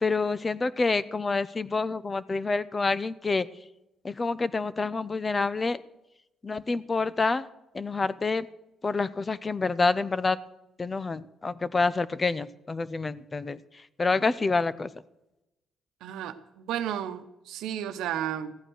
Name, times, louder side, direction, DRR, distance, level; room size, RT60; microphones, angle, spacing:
voice 1, 0.0-3.5 4.0-5.8 6.4-7.5 7.7-8.5 8.8-10.4 10.8-13.6 14.0-14.9, left 3 dB, 30° left, 17 dB, 0.7 m, -27 dB
voice 2, 16.0-18.5, right 10 dB, 90° right, 9 dB, 0.9 m, -33 dB
15.0 x 9.1 x 6.3 m, 0.92 s
cardioid pair, 90°, 0 cm